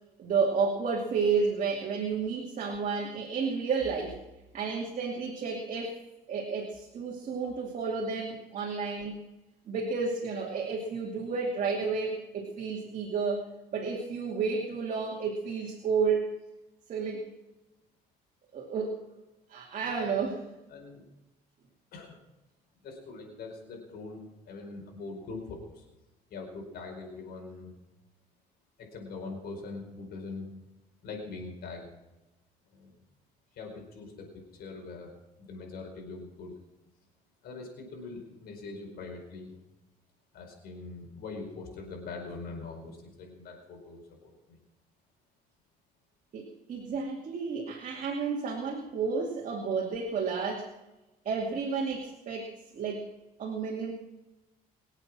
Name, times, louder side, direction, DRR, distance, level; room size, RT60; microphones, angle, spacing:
voice 1, 0.2-4.2 4.5-6.0 6.3-9.2 9.7-13.4 13.7-16.3 16.9-17.3 18.5-19.0 19.5-20.4 46.3-50.7 51.2-53.1 53.4-53.9, right 5 dB, 50° right, 0 dB, 2.5 m, -31 dB
voice 2, 20.7-21.0 21.9-22.2 22.8-25.8 26.3-27.8 28.8-30.5 31.0-32.0 32.7-33.0 33.5-36.5 37.4-39.5 40.3-44.6, left 3 dB, 65° left, 1 dB, 4.8 m, -42 dB
23.5 x 8.2 x 6.1 m, 1.0 s
cardioid pair, 110°, 17 cm